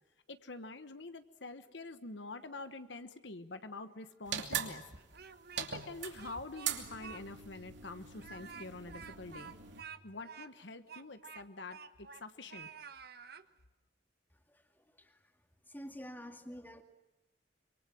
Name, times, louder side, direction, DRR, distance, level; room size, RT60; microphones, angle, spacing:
voice 1, 0.3-4.8 5.5-9.5 10.0-12.8, left 3 dB, 70° left, 10 dB, 1.3 m, -46 dB
sound 1, 4.3-9.8, right 8 dB, 75° right, 2.7 m, -41 dB
Speech, 4.9-5.9 6.2-7.2 7.5-7.6 8.1-12.2 12.5-13.4, right 6 dB, 55° right, 1.2 m, -50 dB
voice 2, 14.8-15.2 15.7-16.8, equal, 10° left, 5 dB, 2.2 m, -48 dB
26.0 x 24.0 x 7.6 m, 1.0 s
head